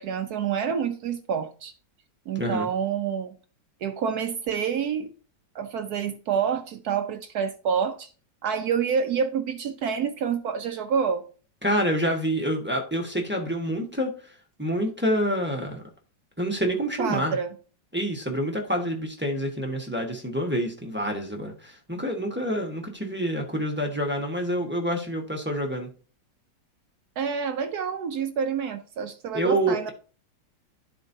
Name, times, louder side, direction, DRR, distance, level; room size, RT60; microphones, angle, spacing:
voice 1, 0.0-1.7 2.3-3.3 3.8-5.1 5.5-8.1 8.4-11.2 17.0-17.5 27.2-29.9, right 7 dB, 70° right, 1.0 m, -28 dB
voice 2, 2.3-2.7 11.6-15.8 16.4-17.4 17.9-25.9 29.3-29.9, equal, 10° right, 0.8 m, -27 dB
12.5 x 4.4 x 2.7 m
omnidirectional pair, 2.0 m